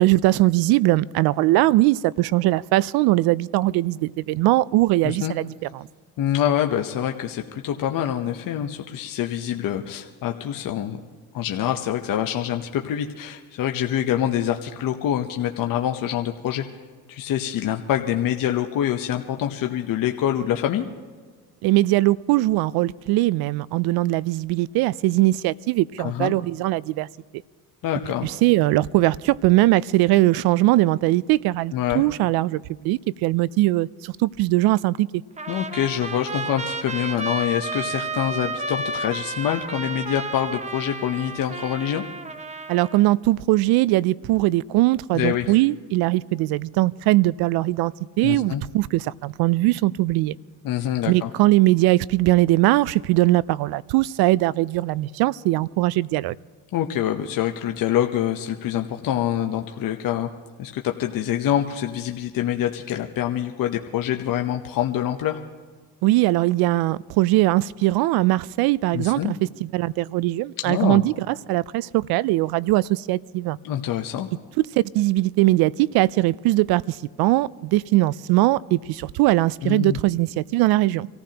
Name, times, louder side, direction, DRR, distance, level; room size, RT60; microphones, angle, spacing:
voice 1, 0.0-5.9 21.6-27.1 28.2-35.2 42.7-50.4 51.1-56.4 66.0-73.6 74.8-81.1, right 18 dB, 75° right, 22 dB, 0.5 m, -20 dB
voice 2, 5.0-5.3 6.2-11.0 11.3-16.6 17.1-20.9 26.0-26.3 27.8-28.3 31.7-32.0 35.5-42.0 45.1-45.5 48.2-48.6 50.6-51.3 56.7-60.3 60.6-65.4 68.9-69.3 70.6-71.0 73.6-74.3 79.6-80.0, left 11 dB, 60° left, 4 dB, 0.9 m, -25 dB
Trumpet, 35.4-43.0, right 3 dB, 20° right, 0.8 m, -32 dB
25.5 x 15.0 x 2.9 m, 1.5 s
supercardioid pair, 80°, 38 cm